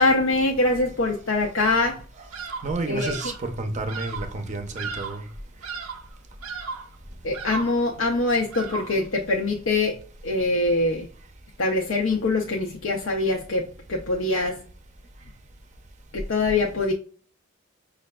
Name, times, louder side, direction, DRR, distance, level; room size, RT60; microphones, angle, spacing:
voice 1, 0.0-2.0 2.9-3.3 7.2-10.0 10.2-11.1 11.6-14.6 16.1-16.9, left 2 dB, 70° left, 0.5 m, -23 dB
Bird vocalization bird call bird song, 2.3-3.4 3.9-4.3 4.8-5.3 5.6-6.1 6.4-6.9 7.3-7.8 8.5-9.0, right 5 dB, 90° right, 0.6 m, -35 dB
voice 2, 2.6-5.3, right 2 dB, 35° right, 0.6 m, -30 dB
5.6 x 2.3 x 2.2 m
head